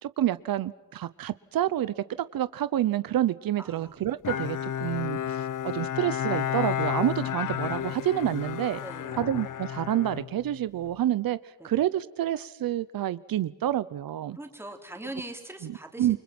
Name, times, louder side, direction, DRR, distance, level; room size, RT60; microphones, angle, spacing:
voice 1, 0.0-1.9 2.3-5.4 5.6-8.8 9.2-11.4 11.6-14.4 15.6-15.7 16.0-16.2, right 12 dB, 85° right, 0.9 m, -28 dB
voice 2, 3.6-3.9 8.8-9.2 11.6-11.7 14.3-16.2, right 1 dB, 5° right, 3.5 m, -41 dB
Bowed string instrument, 4.2-10.9, left 10 dB, 65° left, 0.9 m, -32 dB
29.5 x 24.5 x 6.1 m
wide cardioid pair, 160°, 34 cm